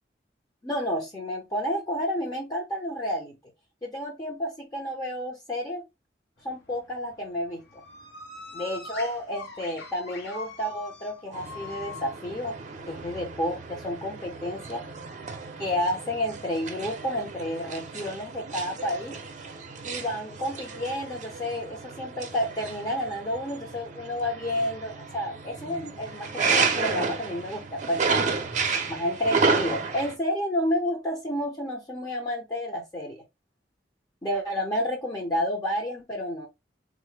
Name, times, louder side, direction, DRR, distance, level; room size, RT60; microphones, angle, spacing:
voice 1, 0.6-3.4 3.8-5.8 6.4-7.8 8.5-12.6 12.9-14.8 15.6-19.2 19.8-28.4 28.9-33.2 34.2-36.5, equal, 25° left, 0.7 m, -30 dB
sound 1, 6.4-13.5, left 4 dB, 70° left, 1.0 m, -44 dB
sound 2, 11.3-30.1, right 4 dB, 45° right, 0.6 m, -32 dB
3.7 x 2.1 x 3.2 m
head